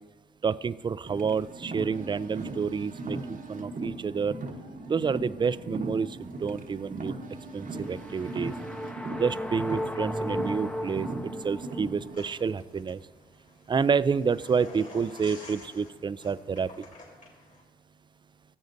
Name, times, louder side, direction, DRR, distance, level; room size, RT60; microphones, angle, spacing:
voice 1, 0.4-4.4 4.9-7.2 7.5-8.5 9.2-13.0 13.7-16.8, right 5 dB, 30° right, 17 dB, 0.3 m, -29 dB
Car, 1.0-12.2, right 2 dB, 55° right, 1.0 m, -38 dB
sound 1, 7.7-12.0, equal, 5° left, 0.7 m, -35 dB
sound 2, 12.1-17.6, left 2 dB, 55° left, 3.7 m, -50 dB
16.0 x 7.9 x 2.7 m, 1.2 s
supercardioid pair, 50°, 17 cm